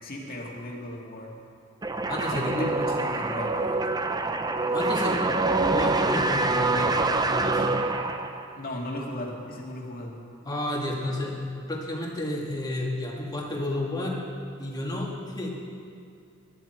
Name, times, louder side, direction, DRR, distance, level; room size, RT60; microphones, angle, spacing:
voice 1, 0.0-1.3 2.3-3.8 8.6-10.2, left 1 dB, 45° left, -1 dB, 2.2 m, -36 dB
sound 1, 1.8-8.6, right 3 dB, 20° right, 0.6 m, -25 dB
voice 2, 2.1-2.7 4.7-5.2 5.6-6.9 7.3-7.7 10.4-14.2 14.6-15.5, left 1 dB, 20° left, -2 dB, 2.2 m, -31 dB
20.5 x 11.0 x 4.5 m, 2.5 s
head